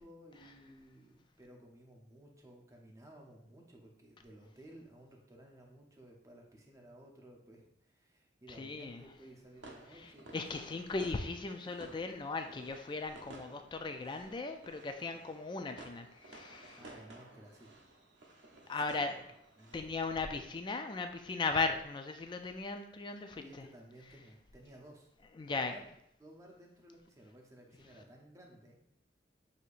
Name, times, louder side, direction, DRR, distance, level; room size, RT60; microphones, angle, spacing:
voice 1, 0.0-11.1 11.5-11.6 16.8-17.8 18.7-19.2 19.6-19.9 23.4-25.1 25.4-25.8 26.2-28.8, right 1 dB, 20° right, 0 dB, 0.7 m, -56 dB
voice 2, 8.6-9.0 9.9-16.8 18.7-19.2 19.7-23.4 25.4-25.7, left 3 dB, 25° left, 6 dB, 0.3 m, -37 dB
sound 1, 9.6-19.8, right 2 dB, 85° right, 0.7 m, -55 dB
6.3 x 2.8 x 2.5 m, 0.76 s
head